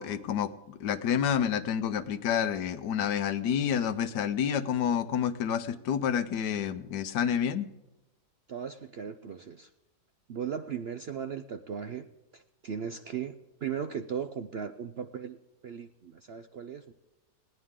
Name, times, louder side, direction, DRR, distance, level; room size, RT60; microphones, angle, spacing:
voice 1, 0.0-7.7, left 8 dB, 85° left, 13 dB, 1.4 m, -29 dB
voice 2, 8.5-9.7 10.3-12.1 12.3-15.4 15.6-16.9, right 7 dB, 60° right, 10 dB, 0.6 m, -37 dB
20.5 x 17.0 x 3.7 m, 1.0 s
omnidirectional pair, 1.7 m